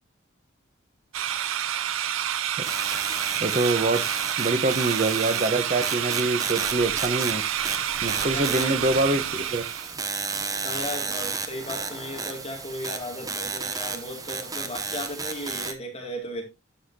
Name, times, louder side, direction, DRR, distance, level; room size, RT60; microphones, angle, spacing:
sound 1, 1.1-9.9, right 10 dB, 85° right, 0.6 m, -28 dB
sound 2, 2.6-15.7, right 4 dB, 20° right, 0.7 m, -33 dB
voice 1, 3.4-4.0 4.4-7.4 8.0-9.2 9.5-9.6, right 2 dB, 35° right, 1.0 m, -25 dB
voice 2, 8.2-8.8 10.6-16.4, left 1 dB, 30° left, 2.6 m, -35 dB
11.5 x 5.7 x 2.8 m
head